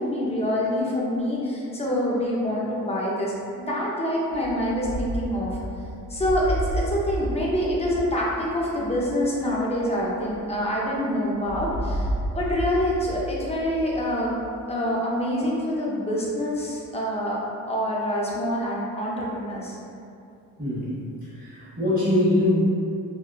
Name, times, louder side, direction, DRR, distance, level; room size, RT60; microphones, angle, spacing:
voice 1, 0.0-5.6 6.1-14.4 14.7-17.4 17.7-19.8, equal, 20° left, -5 dB, 0.5 m, -26 dB
sound 1, 4.3-11.0 11.4-14.6, equal, 80° right, 0.7 m, -32 dB
voice 2, 20.6-20.9 21.4-22.5, left 1 dB, 25° right, -13 dB, 1.0 m, -22 dB
3.4 x 2.3 x 2.3 m, 2.6 s
cardioid pair, 115°, 34 cm